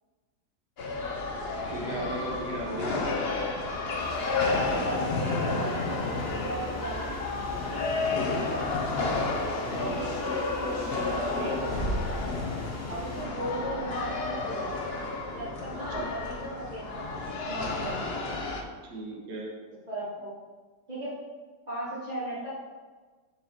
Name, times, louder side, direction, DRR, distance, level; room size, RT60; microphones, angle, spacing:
sound 1, 0.8-18.6, left 3 dB, 50° left, 0.8 m, -31 dB
voice 1, 1.7-3.0 9.6-11.6 15.9-16.1 18.9-19.5, right 1 dB, 70° right, -2 dB, 1.8 m, -36 dB
sound 2, 4.0-13.2, left 1 dB, 20° left, 0.4 m, -42 dB
voice 2, 4.4-7.1 7.9-8.7 12.9-14.8 15.3-18.3 19.9-20.3 20.9-21.1 21.7-22.5, right 1 dB, 25° right, -14 dB, 2.3 m, -37 dB
7.0 x 4.8 x 4.4 m, 1.4 s
omnidirectional pair, 1.8 m